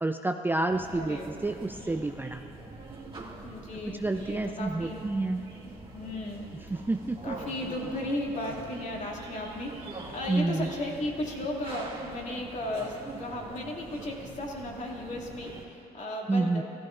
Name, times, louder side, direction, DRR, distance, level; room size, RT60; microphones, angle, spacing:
voice 1, 0.0-2.4 3.8-5.4 6.7-7.3 10.3-10.7 16.3-16.6, right 2 dB, 10° right, 6 dB, 0.4 m, -29 dB
sound 1, 0.7-15.7, right 3 dB, 30° right, 2.2 m, -44 dB
voice 2, 0.9-1.3 3.4-6.5 7.2-16.6, left 1 dB, 45° left, -1 dB, 2.4 m, -36 dB
15.5 x 14.0 x 2.5 m, 2.9 s
supercardioid pair, 60°, 18 cm